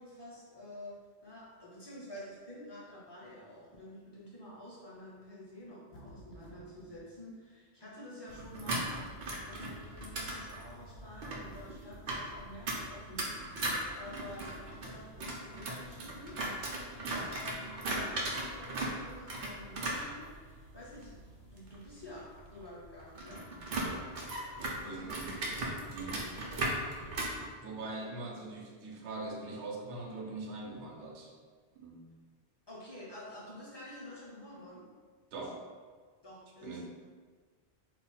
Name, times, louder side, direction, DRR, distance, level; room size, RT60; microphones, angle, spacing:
voice 1, 0.0-9.1 9.4-16.4 17.2-20.3 20.7-23.5 24.8-25.3 25.8-26.3 32.7-34.8 36.2-36.8, left 1 dB, 35° left, -6 dB, 0.4 m, -49 dB
sound 1, 5.9-7.0, equal, 75° left, 0.8 m, -53 dB
sound 2, 8.3-27.5, right 1 dB, 55° right, 0.6 m, -38 dB
voice 2, 23.8-24.1 24.6-25.3 25.8-26.2 27.6-31.3 31.7-32.1 35.3-35.6 36.6-36.8, right 3 dB, 85° right, 0 dB, 0.9 m, -42 dB
2.3 x 2.1 x 3.9 m, 1.5 s
omnidirectional pair, 1.1 m